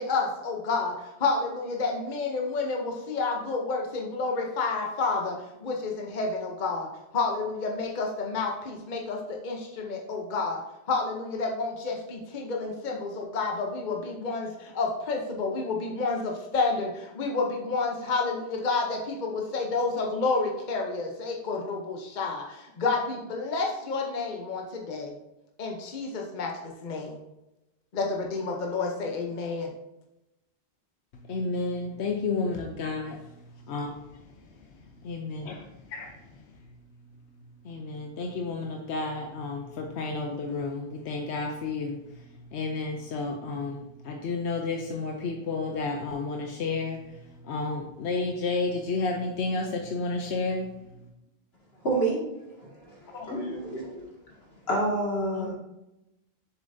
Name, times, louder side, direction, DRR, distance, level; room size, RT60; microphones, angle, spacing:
voice 1, 0.0-5.4 5.6-6.9 7.1-10.6 10.9-25.1 25.6-27.2 27.9-29.7, left 3 dB, 50° left, 1 dB, 0.9 m, -30 dB
voice 2, 31.1-33.2 33.7-35.5 35.9-36.7 37.0-51.1 53.1-53.4 53.8-53.9, left 3 dB, 85° left, 2 dB, 1.0 m, -32 dB
voice 3, 51.8-52.2 52.5-54.0 54.7-55.5, right 2 dB, 70° left, -4 dB, 2.4 m, -29 dB
7.2 x 6.8 x 2.7 m, 0.93 s
omnidirectional pair, 1.1 m